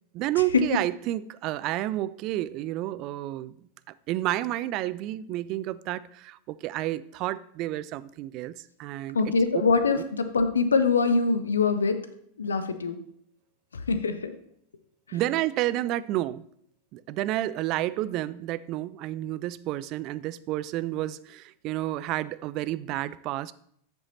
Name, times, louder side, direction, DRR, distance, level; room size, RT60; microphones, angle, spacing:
voice 1, 0.1-3.5 4.1-8.5 8.8-9.2 9.9-10.0 15.1-16.5 16.9-23.5, right 15 dB, 40° right, 0.3 m, -30 dB
voice 2, 9.1-12.0 12.4-13.0 13.9-14.3, left 4 dB, 70° left, 0.7 m, -24 dB
8.0 x 7.0 x 4.0 m
figure-of-eight pair, 90°, 0 cm